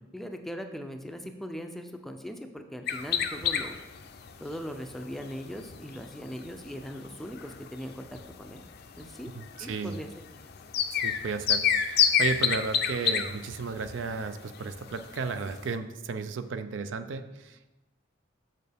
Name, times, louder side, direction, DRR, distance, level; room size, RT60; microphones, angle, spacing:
voice 1, 0.1-3.8 4.4-8.6 9.0-9.3 9.6-10.1, equal, ahead, 5 dB, 0.4 m, -40 dB
sound 1, 2.9-15.7, left 8 dB, 55° left, 0.5 m, -31 dB
voice 2, 9.3-10.0 10.9-17.7, right 4 dB, 70° right, 10 dB, 0.4 m, -34 dB
6.5 x 6.5 x 3.4 m, 1.0 s
head